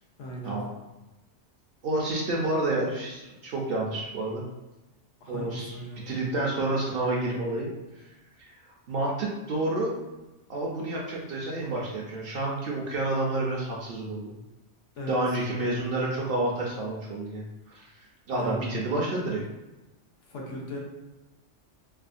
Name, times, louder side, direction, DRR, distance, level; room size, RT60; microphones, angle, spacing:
voice 1, 0.2-0.6 5.2-6.1 15.0-15.2 18.3-18.8 20.3-20.8, equal, 80° left, -2 dB, 1.0 m, -37 dB
voice 2, 1.8-4.4 5.3-5.7 6.1-7.7 8.9-10.0 10.5-14.3 15.1-17.9 18.3-19.4, right 2 dB, 60° right, -3 dB, 0.7 m, -29 dB
3.3 x 2.1 x 2.4 m, 1.0 s
omnidirectional pair, 1.3 m